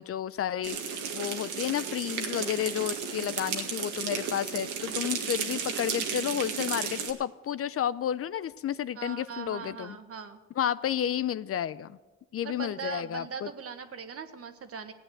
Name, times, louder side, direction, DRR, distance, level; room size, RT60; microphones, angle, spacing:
voice 1, 0.0-10.0 10.6-12.0 12.3-13.5, left 10 dB, 50° left, 16 dB, 0.5 m, -31 dB
sound 1, 0.6-7.1, right 6 dB, 90° right, 1.9 m, -34 dB
voice 2, 9.0-10.4 12.4-14.9, right 6 dB, 50° right, 8 dB, 1.5 m, -40 dB
17.0 x 8.9 x 7.8 m, 1.2 s
cardioid pair, 90°, 30 cm